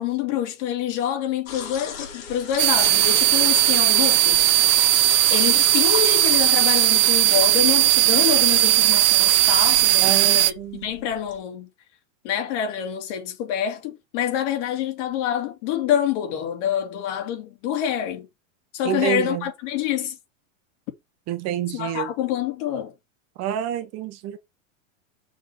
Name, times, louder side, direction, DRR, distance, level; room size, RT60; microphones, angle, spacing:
voice 1, 0.0-4.6 5.3-10.5 10.8-11.7 12.2-18.3 18.7-20.2 21.7-22.9, left 10 dB, 60° left, 2.7 m, -26 dB
sound 1, 1.5-11.4, left 6 dB, 90° left, 4.2 m, -35 dB
sound 2, 2.6-10.5, right 18 dB, 65° right, 0.8 m, -18 dB
voice 2, 10.0-10.9 18.8-19.4 21.3-22.1 23.4-24.4, right 11 dB, 40° right, 1.3 m, -28 dB
6.7 x 5.4 x 4.5 m
supercardioid pair, 135°, 40 cm